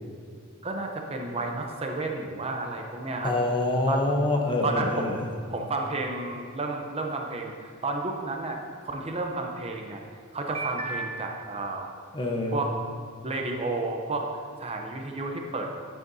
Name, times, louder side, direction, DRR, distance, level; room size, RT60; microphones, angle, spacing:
voice 1, 0.6-3.3 3.9-4.1 4.6-8.6 8.8-10.0 10.3-11.9 12.5-12.8 13.2-14.3 14.6-15.7, right 2 dB, 30° right, 2 dB, 0.7 m, -31 dB
voice 2, 3.2-5.2 12.1-12.6, left 2 dB, 25° left, 1 dB, 0.9 m, -26 dB
11.0 x 9.1 x 2.7 m, 2.2 s
head